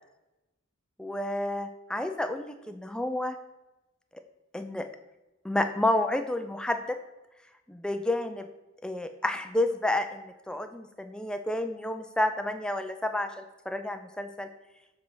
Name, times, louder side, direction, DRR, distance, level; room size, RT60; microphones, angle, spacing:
voice 1, 1.0-3.4 4.1-4.2 4.5-4.9 5.4-7.0 7.7-8.5 8.8-14.5, left 1 dB, 5° left, 8 dB, 0.3 m, -30 dB
7.7 x 3.5 x 5.9 m, 1.0 s
head